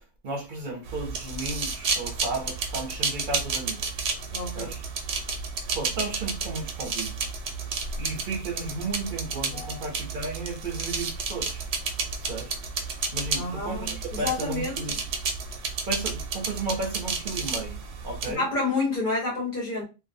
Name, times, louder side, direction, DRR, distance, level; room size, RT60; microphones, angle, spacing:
voice 1, 0.2-4.0 4.5-4.8 5.7-7.4 8.0-11.6 12.2-12.5 13.1-15.0 15.9-18.4, right 3 dB, 60° right, 0.7 m, -34 dB
sound 1, 0.8-18.3, right 4 dB, 85° right, 0.8 m, -32 dB
voice 2, 4.3-4.8 9.5-9.9 13.3-14.8 18.3-19.8, left 3 dB, 50° left, 1.3 m, -29 dB
2.6 x 2.3 x 2.5 m
omnidirectional pair, 1.1 m